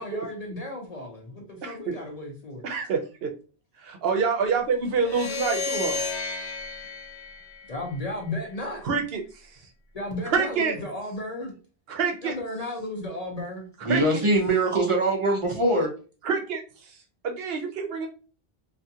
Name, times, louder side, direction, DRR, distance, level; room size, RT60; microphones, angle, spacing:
voice 1, 0.0-2.6 7.7-8.9 9.9-11.6 12.2-13.7, left 1 dB, 45° left, 0.6 m, -34 dB
voice 2, 1.6-1.9 2.6-3.3 3.8-6.0 8.8-9.2 10.3-10.8 11.9-12.3 13.9-14.2 16.2-16.9 17.2-18.1, right 5 dB, 70° right, 0.8 m, -27 dB
sound 1, 5.0-8.3, left 4 dB, 85° left, 0.9 m, -32 dB
voice 3, 13.8-15.9, right 2 dB, 40° right, 0.5 m, -22 dB
2.4 x 2.3 x 2.6 m
omnidirectional pair, 1.1 m